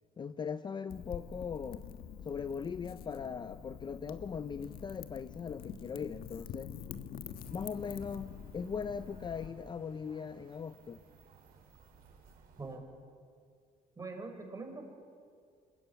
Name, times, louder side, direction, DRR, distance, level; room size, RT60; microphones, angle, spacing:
voice 1, 0.2-1.8 2.2-6.7 7.5-11.0, left 6 dB, 30° left, 12 dB, 0.6 m, -39 dB
Wind / Fire, 0.9-9.5, left 8 dB, 75° left, 1.5 m, -46 dB
sound 1, 7.4-12.8, right 5 dB, 70° right, 5.0 m, -60 dB
voice 2, 14.0-14.9, right 3 dB, 20° right, 4 dB, 4.9 m, -43 dB
26.5 x 21.5 x 9.4 m, 2.2 s
cardioid pair, 130°, 16 cm